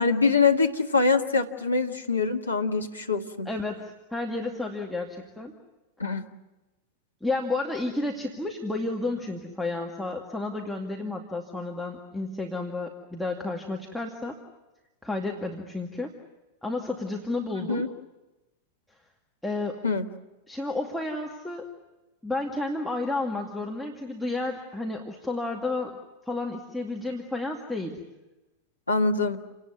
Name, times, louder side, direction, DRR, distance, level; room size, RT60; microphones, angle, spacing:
voice 1, 0.0-3.5 6.0-6.3 17.6-17.9 19.8-20.1 28.9-29.4, left 4 dB, 80° left, 4 dB, 1.7 m, -24 dB
voice 2, 3.5-5.6 7.2-14.4 15.0-16.1 16.6-17.9 19.4-19.8 20.5-21.7 22.2-26.0 26.3-28.0, left 2 dB, ahead, -1 dB, 2.2 m, -31 dB
29.0 x 18.5 x 9.5 m, 1.1 s
figure-of-eight pair, 90°, 0 cm